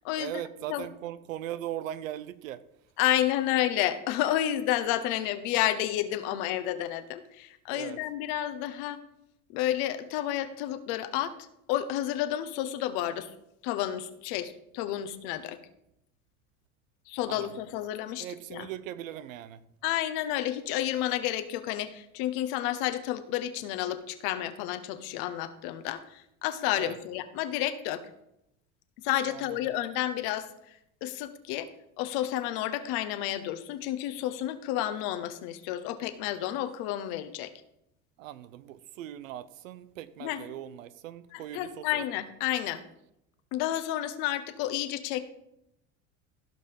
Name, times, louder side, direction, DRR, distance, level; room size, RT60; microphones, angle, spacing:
voice 1, 0.2-2.6 7.7-8.0 17.3-17.6 18.2-19.6 26.7-27.0 29.3-29.7 38.2-42.0, right 12 dB, 90° right, 0.8 m, -39 dB
voice 2, 3.0-9.0 9.5-13.3 13.6-15.6 17.1-18.7 19.8-28.0 29.0-30.7 31.0-31.7 32.0-37.5 40.2-40.4 41.3-42.8 43.5-45.3, left 12 dB, 70° left, 1.3 m, -31 dB
16.0 x 5.6 x 5.2 m
hypercardioid pair, 85°, 38 cm